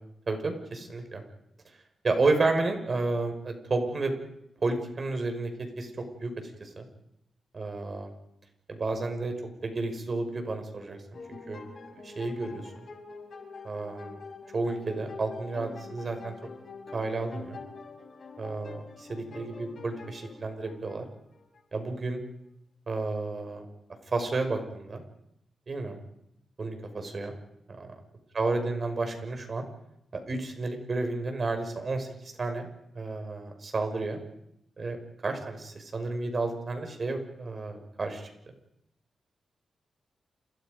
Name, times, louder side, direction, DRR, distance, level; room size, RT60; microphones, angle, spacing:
voice 1, 0.3-1.2 2.0-4.1 4.6-5.5 5.8-5.9 6.2-6.3 6.6-6.8 7.5-8.1 8.7-9.3 9.6-11.0 11.3-11.6 12.0-12.6 13.6-14.2 14.5-16.3 16.9-17.6 18.4-21.1 21.7-22.2 22.9-23.7 24.1-25.0 25.7-25.9 26.6-27.4 27.8-27.9 28.3-29.6 30.1-34.2 34.8-38.3, right 3 dB, 40° right, 6 dB, 6.0 m, -31 dB
sound 1, 11.1-21.6, left 4 dB, 55° left, 6.1 m, -45 dB
29.0 x 29.0 x 5.3 m, 0.77 s
cardioid pair, 105°, 0 cm